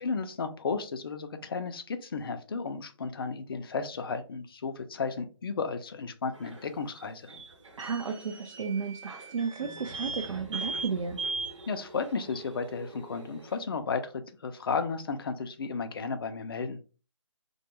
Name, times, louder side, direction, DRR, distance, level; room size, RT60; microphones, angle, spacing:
voice 1, 0.0-7.3 11.7-14.1 14.4-16.8, left 5 dB, 45° left, 0.4 m, -33 dB
sound 1, 6.3-13.6, right 3 dB, 65° right, 0.9 m, -40 dB
voice 2, 7.8-11.2, right 5 dB, 85° right, 0.4 m, -33 dB
2.2 x 2.2 x 2.8 m
hypercardioid pair, 160°, 17 cm